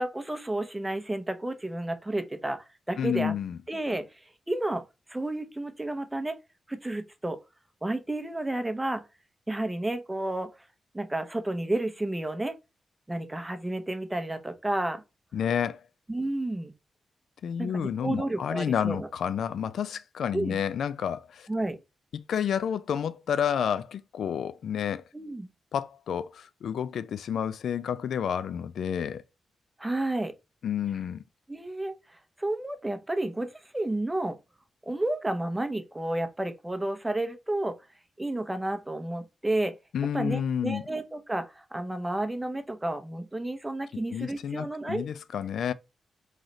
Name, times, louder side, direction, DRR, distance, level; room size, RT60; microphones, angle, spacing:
voice 1, 0.0-3.3 3.7-4.8 5.1-6.4 6.7-7.4 7.8-9.0 9.5-10.5 10.9-12.5 13.1-15.0 16.1-16.7 17.6-19.1 20.3-20.6 21.5-21.8 25.1-25.5 29.8-30.3 31.5-34.4 34.8-37.8 38.2-39.7 40.1-45.1, right 1 dB, 10° right, 0.7 m, -31 dB
voice 2, 3.0-3.6 15.3-15.8 17.4-21.5 22.3-25.0 25.7-29.2 30.6-31.2 39.9-40.8 43.9-45.7, left 8 dB, 85° left, 0.4 m, -30 dB
3.9 x 3.2 x 3.9 m
wide cardioid pair, 110°, 0 cm